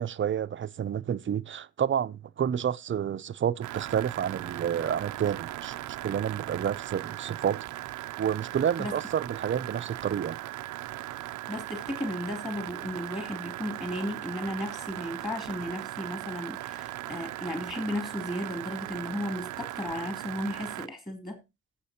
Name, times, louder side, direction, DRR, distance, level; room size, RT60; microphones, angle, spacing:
voice 1, 0.0-5.7 6.0-7.6 8.2-10.4, right 9 dB, 40° right, 0.6 m, -29 dB
sound 1, 3.6-20.9, right 16 dB, 80° right, 0.6 m, -38 dB
voice 2, 11.5-21.4, left 1 dB, 15° left, 3.1 m, -34 dB
17.5 x 7.4 x 2.8 m
cardioid pair, 90°, 30 cm